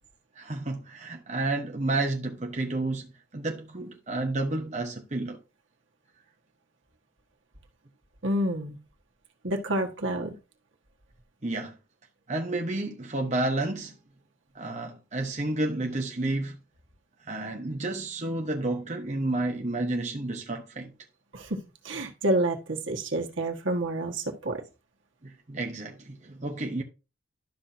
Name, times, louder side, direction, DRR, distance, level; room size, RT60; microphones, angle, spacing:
voice 1, 0.4-3.1 3.3-5.4 11.4-11.7 12.3-13.9 14.5-16.6 17.3-20.9 25.2-26.8, right 2 dB, 35° right, 1.0 m, -30 dB
voice 2, 8.2-8.8 9.4-10.3 21.3-24.6, right 1 dB, 75° right, 1.7 m, -29 dB
12.0 x 5.9 x 2.8 m
head